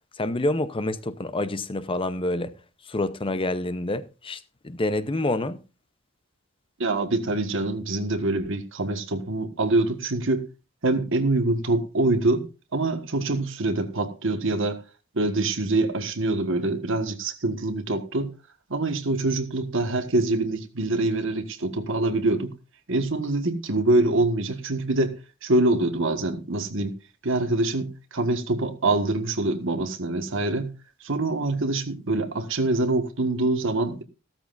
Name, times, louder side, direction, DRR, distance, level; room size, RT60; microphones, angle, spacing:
voice 1, 0.2-2.5 2.9-5.6, left 2 dB, 25° left, 0.7 m, -27 dB
voice 2, 6.8-10.5 10.8-12.5 12.7-14.8 15.1-18.3 18.7-22.5 22.9-25.2 25.4-26.9 27.2-30.7 31.0-34.0, right 2 dB, 65° right, 1.6 m, -25 dB
15.0 x 13.5 x 2.5 m
head